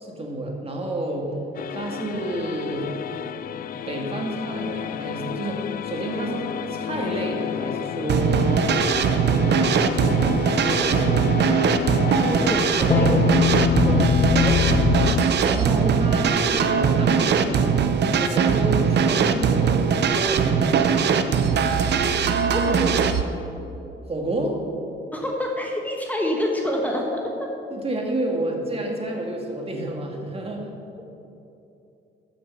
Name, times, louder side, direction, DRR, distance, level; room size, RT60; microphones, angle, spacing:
voice 1, 0.0-1.3 1.7-2.9 3.9-8.7 9.4-11.3 13.7-21.3 24.0-24.6 27.7-30.7, right 1 dB, 30° right, 0 dB, 2.0 m, -30 dB
sound 1, 1.6-15.3, left 7 dB, 45° left, 0.4 m, -26 dB
sound 2, 8.1-23.2, right 6 dB, 60° right, 0.7 m, -21 dB
voice 2, 12.1-13.2 22.5-23.1 25.1-27.5, left 1 dB, 10° left, -1 dB, 1.4 m, -27 dB
13.5 x 7.0 x 5.6 m, 2.8 s
cardioid pair, 90°, 20 cm